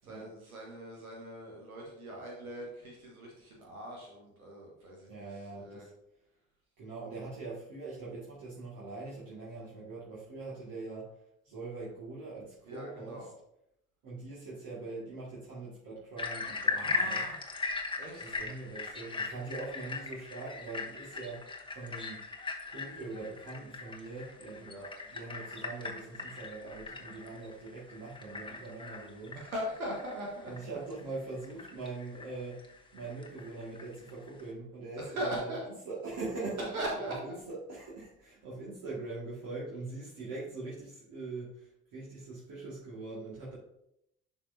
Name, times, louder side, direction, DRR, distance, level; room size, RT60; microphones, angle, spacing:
voice 1, 0.0-5.8 12.6-13.3 16.7-17.4 17.9-18.4 24.6-24.9 29.3-30.8 35.0-35.7 36.7-37.4, right 1 dB, 85° right, -2 dB, 1.5 m, -40 dB
voice 2, 5.1-5.9 6.8-11.2 11.4-13.3 14.0-17.2 18.2-21.5 21.7-22.2 22.6-24.8 25.1-29.4 30.4-32.6 32.9-35.5 35.8-36.7 37.0-43.6, right 3 dB, 50° right, -7 dB, 2.1 m, -42 dB
sound 1, 16.2-34.5, left 4 dB, 10° left, 1.1 m, -39 dB
11.0 x 4.5 x 2.8 m, 0.78 s
figure-of-eight pair, 55°, 42 cm